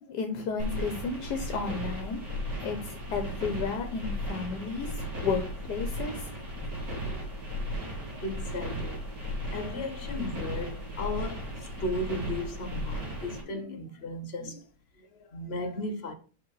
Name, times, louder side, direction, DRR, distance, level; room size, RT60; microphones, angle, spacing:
voice 1, 0.1-2.2 2.6-6.3, left 5 dB, 75° left, 1.4 m, -33 dB
sound 1, 0.6-13.4, equal, 90° right, 3.1 m, -35 dB
voice 2, 7.8-14.7 15.0-16.1, left 1 dB, 45° left, 0.9 m, -36 dB
5.5 x 5.1 x 4.7 m
omnidirectional pair, 1.8 m